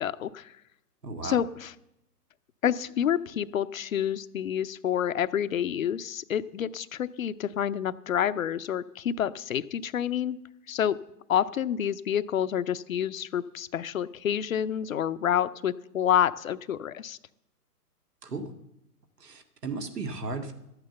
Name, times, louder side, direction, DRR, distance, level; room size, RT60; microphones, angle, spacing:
voice 1, 0.0-0.5 1.2-1.7 2.6-10.4 10.7-11.0 11.3-17.2, left 9 dB, 60° left, 14 dB, 0.6 m, -28 dB
voice 2, 1.0-1.4 18.2-18.5 19.2-20.5, right 3 dB, 75° right, 6 dB, 2.0 m, -35 dB
13.0 x 9.0 x 6.8 m, 0.84 s
figure-of-eight pair, 135°, 48 cm